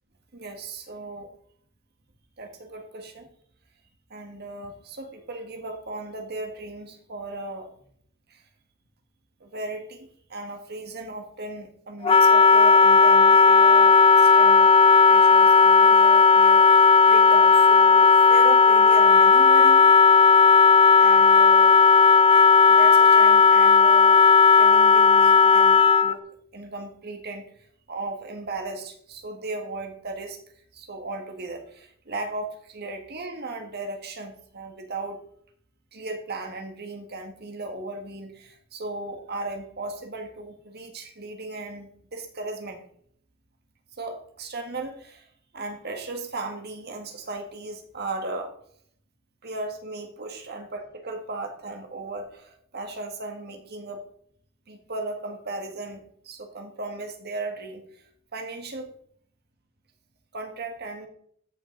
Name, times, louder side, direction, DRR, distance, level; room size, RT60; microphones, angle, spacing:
voice 1, 0.3-1.3 2.4-3.3 4.1-7.7 8.3-8.4 9.4-14.7 15.1-19.9 21.0-21.8 22.7-24.2 24.6-26.3 26.5-27.4 27.9-30.4 30.7-35.2 35.9-42.8 44.0-45.3 45.5-48.5 49.4-54.0 54.7-58.9 60.3-61.1, right 2 dB, 50° right, 4 dB, 1.7 m, -36 dB
Wind instrument woodwind instrument, 12.0-26.2, left 5 dB, 25° left, 0.4 m, -15 dB
14.0 x 5.5 x 3.9 m, 0.64 s
head